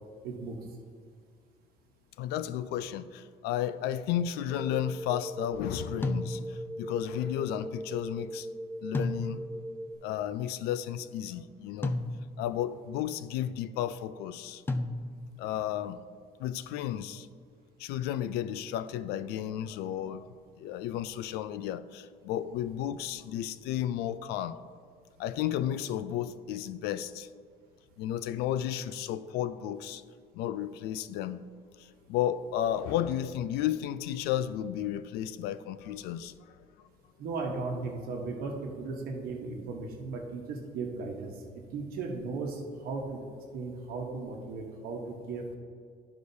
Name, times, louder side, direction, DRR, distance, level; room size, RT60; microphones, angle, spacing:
voice 1, 0.2-0.8 37.2-43.2 43.5-45.6, right 3 dB, 70° right, 0 dB, 1.1 m, -36 dB
voice 2, 2.2-8.5 8.8-9.4 10.0-12.0 12.4-14.6 15.4-16.0 16.4-17.3 17.8-24.6 25.2-27.3 28.0-30.0 30.3-31.4 31.8-36.3, left 11 dB, 90° left, 14 dB, 0.4 m, -33 dB
sound 1, 4.5-9.9, right 1 dB, 15° right, 1.0 m, -40 dB
sound 2, 6.0-6.8 8.9-9.7 11.8-12.6 14.7-15.4, left 2 dB, 15° left, 0.4 m, -33 dB
13.0 x 4.9 x 2.7 m, 2.1 s
cardioid pair, 125°, 16 cm